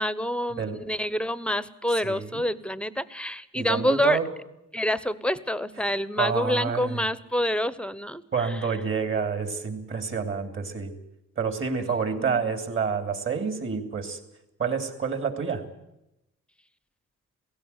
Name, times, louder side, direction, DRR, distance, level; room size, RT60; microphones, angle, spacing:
voice 1, 0.0-4.2 4.7-8.2 12.1-12.5, left 1 dB, 5° left, 17 dB, 0.9 m, -27 dB
voice 2, 2.0-2.4 3.5-4.3 6.2-7.0 8.3-10.9 11.4-14.2 14.6-15.6, right 5 dB, 40° right, 8 dB, 2.9 m, -28 dB
16.5 x 16.5 x 9.6 m, 0.87 s
cardioid pair, 90°, 30 cm